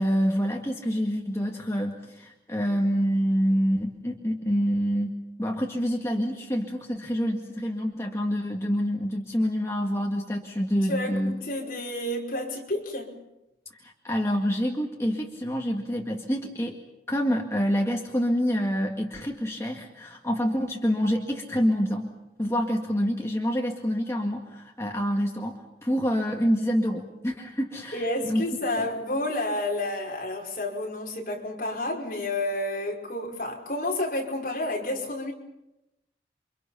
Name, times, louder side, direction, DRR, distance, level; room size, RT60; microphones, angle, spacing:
voice 1, 0.0-5.1 5.4-11.4 13.8-16.8 17.1-22.1 22.4-28.5, equal, 15° left, 0 dB, 2.0 m, -27 dB
voice 2, 10.8-13.1 27.9-35.3, left 1 dB, 50° left, 0 dB, 5.3 m, -30 dB
29.5 x 25.0 x 5.8 m, 0.93 s
head